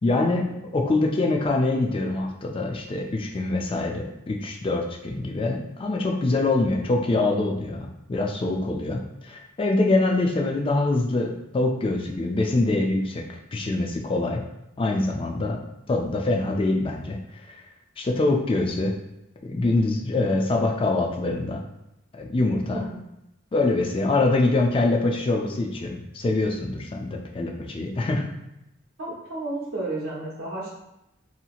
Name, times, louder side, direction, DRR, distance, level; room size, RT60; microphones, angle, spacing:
voice 1, 0.0-13.2 13.5-14.4 14.8-15.6 15.9-17.2 17.4-17.5 18.0-18.9 19.4-21.6 22.1-22.8 23.5-28.3, left 2 dB, 25° left, 1 dB, 0.3 m, -24 dB
voice 2, 29.0-30.7, right 2 dB, 75° right, -4 dB, 0.9 m, -32 dB
2.8 x 2.7 x 2.4 m, 0.88 s
head